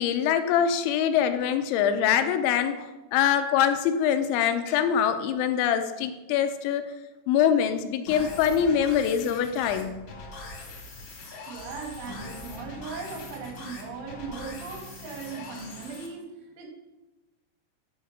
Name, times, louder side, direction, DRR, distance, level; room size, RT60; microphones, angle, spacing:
voice 1, 0.0-2.8 3.1-6.9 7.3-10.0, left 8 dB, 80° left, 8 dB, 2.9 m, -24 dB
sound 1, 8.1-16.1, left 2 dB, 60° left, 1.5 m, -42 dB
voice 2, 11.5-16.7, right 5 dB, 75° right, 0 dB, 4.3 m, -38 dB
11.0 x 4.6 x 6.5 m, 1.1 s
omnidirectional pair, 5.4 m